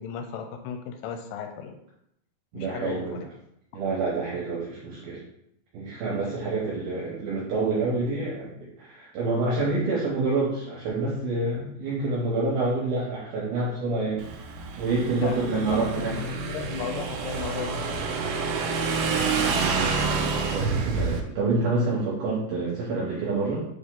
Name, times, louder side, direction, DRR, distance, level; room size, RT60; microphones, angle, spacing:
voice 1, 0.0-1.8 2.5-3.2 6.2-6.3 15.1-18.1, left 7 dB, 80° left, 5 dB, 2.3 m, -35 dB
voice 2, 2.5-3.2 3.7-5.2 5.7-14.3 14.8-16.1 18.9-23.7, right 3 dB, 70° right, -6 dB, 2.7 m, -28 dB
Motorcycle / Engine, 14.2-21.2, right 4 dB, 85° right, 2.9 m, -28 dB
7.1 x 3.6 x 3.7 m, 0.75 s
omnidirectional pair, 5.0 m